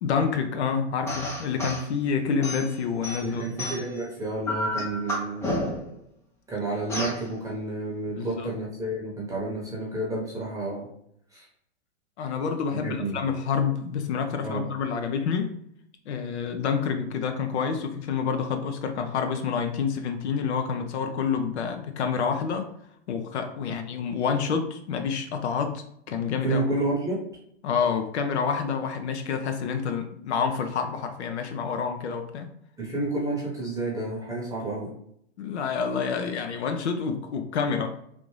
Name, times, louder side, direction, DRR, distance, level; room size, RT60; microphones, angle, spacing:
voice 1, 0.0-3.5 8.1-8.5 12.2-15.5 16.1-22.7 23.1-26.6 27.6-32.5 35.4-38.0, left 6 dB, 70° left, 6 dB, 0.6 m, -28 dB
sound 1, 1.1-1.9 2.4-4.0 4.5-5.9 6.9-7.2, left 1 dB, 10° left, 0.4 m, -31 dB
voice 2, 3.2-5.7 6.5-10.9 11.3-11.5 12.7-13.2 14.4-14.7 23.7-23.8 26.4-27.2 32.8-34.9, right 2 dB, 10° right, -5 dB, 0.8 m, -30 dB
3.4 x 2.5 x 3.1 m, 0.72 s
hypercardioid pair, 120°, 35 cm